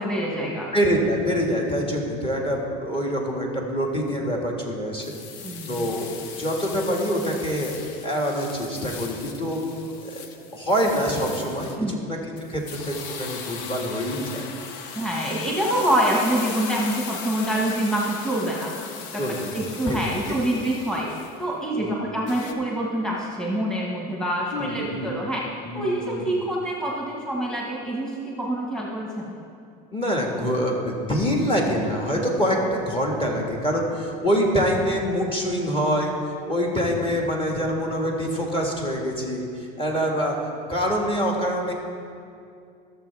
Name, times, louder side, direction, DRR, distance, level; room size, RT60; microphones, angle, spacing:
voice 1, 0.0-0.7 5.4-5.8 10.4-10.6 11.8-11.9 14.9-18.7 19.1-19.2 19.5-21.1 21.4-25.4 25.7-29.4, right 1 dB, 5° left, -4 dB, 1.6 m, -26 dB
voice 2, 0.7-5.1 5.7-6.1 6.4-7.7 8.0-9.6 10.0-10.2 10.5-12.2 12.5-14.5 19.2-19.6 19.9-20.0 21.8-22.0 24.5-25.1 25.6-26.2 29.9-41.7, equal, 25° left, -1 dB, 1.8 m, -25 dB
sound 1, 5.0-11.8 12.4-21.4 22.3-22.5, left 6 dB, 80° left, 0.9 m, -38 dB
17.0 x 6.9 x 3.5 m, 2.4 s
supercardioid pair, 105°, 21 cm